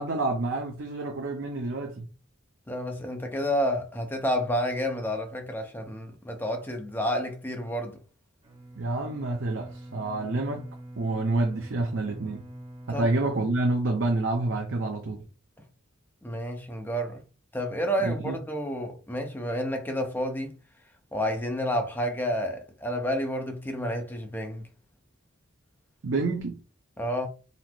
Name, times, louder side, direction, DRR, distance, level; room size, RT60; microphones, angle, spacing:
voice 1, 0.0-2.0 8.8-10.7 11.0-12.5 12.9-15.2 18.0-18.4 26.0-26.6, right 2 dB, 60° right, 0.6 m, -28 dB
voice 2, 2.7-8.0 12.9-13.1 16.2-17.2 17.5-20.6 21.1-24.7 27.0-27.3, equal, 10° left, 0.7 m, -30 dB
Bowed string instrument, 8.4-14.5, right 1 dB, 30° right, 1.0 m, -45 dB
4.1 x 2.0 x 4.4 m
head